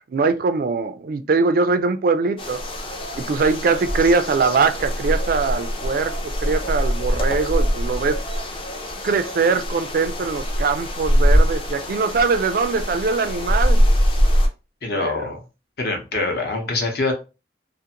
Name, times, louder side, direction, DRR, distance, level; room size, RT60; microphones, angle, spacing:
voice 1, 0.0-2.9 3.2-8.2 9.0-13.8 14.9-15.3, right 4 dB, 50° right, 0.3 m, -22 dB
sound 1, 2.4-14.5, equal, 30° left, 0.5 m, -22 dB
voice 2, 14.8-15.4 15.8-17.1, left 3 dB, 60° left, 0.8 m, -24 dB
2.5 x 2.5 x 2.8 m
head